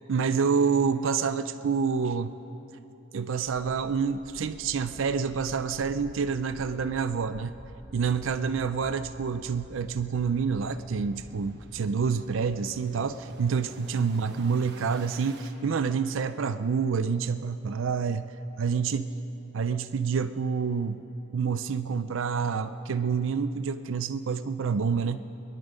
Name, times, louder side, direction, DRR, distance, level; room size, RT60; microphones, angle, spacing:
voice 1, 0.1-2.3 3.1-7.5 7.9-18.2 18.6-19.1 19.5-21.0 21.3-25.2, right 5 dB, 70° right, 11 dB, 0.4 m, -28 dB
sound 1, 3.4-15.5, right 1 dB, 50° right, 1.1 m, -48 dB
22.0 x 11.0 x 5.2 m, 2.9 s
head